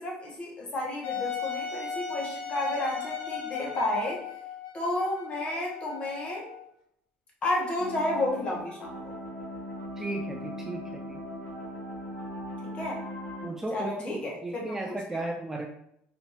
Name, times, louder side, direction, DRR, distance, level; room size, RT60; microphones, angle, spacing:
voice 1, 0.0-4.2 4.7-6.5 7.4-8.9 12.7-13.0 13.7-15.3, left 1 dB, 30° left, -1 dB, 1.2 m, -31 dB
Wind instrument woodwind instrument, 1.0-6.7, left 7 dB, 90° left, 1.2 m, -37 dB
sound 1, 7.8-13.5, equal, 55° left, 1.8 m, -39 dB
voice 2, 10.0-11.2 13.4-15.7, right 2 dB, 10° right, 2 dB, 0.3 m, -35 dB
4.4 x 2.6 x 4.2 m, 0.76 s
cardioid pair, 140°, 4 cm